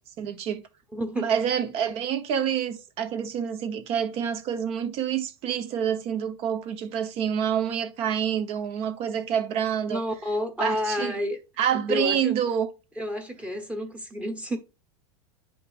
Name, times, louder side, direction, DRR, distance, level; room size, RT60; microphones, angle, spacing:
voice 1, 0.2-0.6 1.2-10.0 10.6-11.1 11.6-12.7, right 8 dB, 40° right, 1.0 m, -27 dB
voice 2, 0.9-1.3 9.9-11.4 11.7-12.3 13.0-14.6, equal, 10° right, 1.1 m, -30 dB
9.9 x 5.3 x 2.5 m
supercardioid pair, 150°, 16 cm